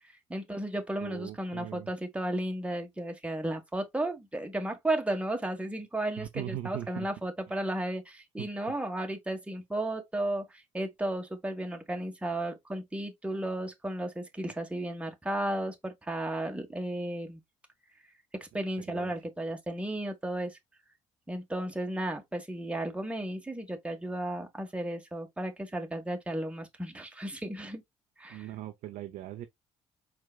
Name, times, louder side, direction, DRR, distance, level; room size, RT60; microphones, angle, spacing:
voice 1, 0.3-17.4 18.4-20.6 21.3-27.8 28.2-28.5, right 1 dB, 5° right, 1.5 m, -34 dB
voice 2, 1.0-1.9 6.2-7.1 8.4-8.5 18.9-19.1 28.3-29.5, right 13 dB, 55° right, 0.6 m, -40 dB
4.7 x 4.5 x 2.3 m
figure-of-eight pair, 50°, 16 cm